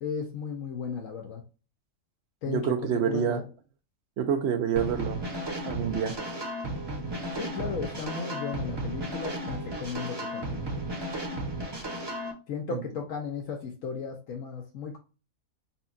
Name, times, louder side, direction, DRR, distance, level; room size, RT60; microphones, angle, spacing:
voice 1, 0.0-1.4 2.4-3.4 7.4-10.8 12.5-15.0, left 6 dB, 70° left, 1.1 m, -35 dB
voice 2, 2.5-3.4 4.2-5.2 5.7-6.2 12.7-12.8, right 8 dB, 65° right, 0.7 m, -27 dB
sound 1, 4.8-12.3, right 1 dB, 20° right, 0.8 m, -34 dB
5.5 x 2.3 x 2.5 m
omnidirectional pair, 1.4 m